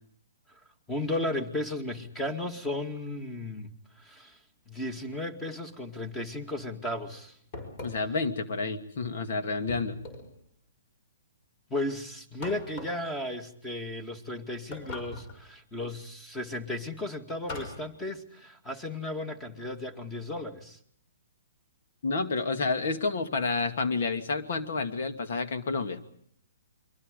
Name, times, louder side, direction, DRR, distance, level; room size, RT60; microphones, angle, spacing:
voice 1, 0.9-3.7 4.0-4.4 4.7-7.4 11.7-20.8, left 1 dB, 10° left, 8 dB, 2.3 m, -35 dB
sound 1, 7.5-8.2 9.7-10.4 12.4-13.1 14.7-15.4 17.5-17.9, left 2 dB, 35° left, 5.8 m, -41 dB
voice 2, 7.8-10.0 22.0-26.0, left 3 dB, 65° left, 8 dB, 2.5 m, -29 dB
29.0 x 24.0 x 5.4 m, 0.63 s
hypercardioid pair, 145°, 0 cm